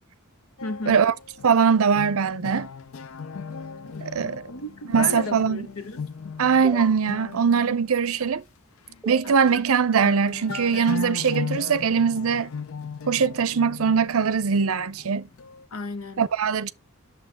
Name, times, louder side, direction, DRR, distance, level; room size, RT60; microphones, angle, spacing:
voice 1, 0.6-1.0 3.8-6.1 9.2-9.6 15.7-16.2, left 3 dB, 85° left, 1.2 m, -35 dB
sound 1, 0.6-8.3 8.9-9.0 9.3-9.8 10.0-15.6, left 6 dB, 70° left, 0.5 m, -37 dB
voice 2, 1.4-2.7 4.0-4.4 4.9-5.7 6.4-8.4 9.1-12.5 13.1-15.3 16.2-16.7, right 6 dB, 75° right, 0.5 m, -21 dB
sound 2, 6.6-7.0 9.0-9.6 9.9-10.7, right 3 dB, ahead, 0.9 m, -36 dB
8.6 x 6.7 x 3.5 m
head